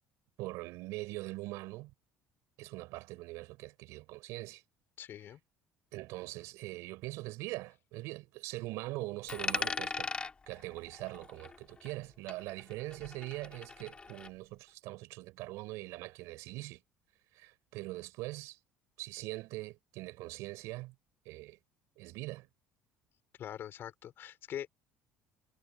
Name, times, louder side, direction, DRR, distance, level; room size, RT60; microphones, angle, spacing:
voice 1, 0.4-1.9 2.6-4.6 5.9-10.1 10.5-16.8 17.3-18.6 19.0-20.9 21.2-21.6 22.0-22.5, right 20 dB, 80° right, 5.1 m, -42 dB
voice 2, 5.0-5.4 23.4-24.7, left 10 dB, 50° left, 4.9 m, -43 dB
Coin (dropping), 9.3-12.0 12.3-14.3, left 4 dB, 20° left, 3.1 m, -39 dB
cardioid pair, 135°, 5 cm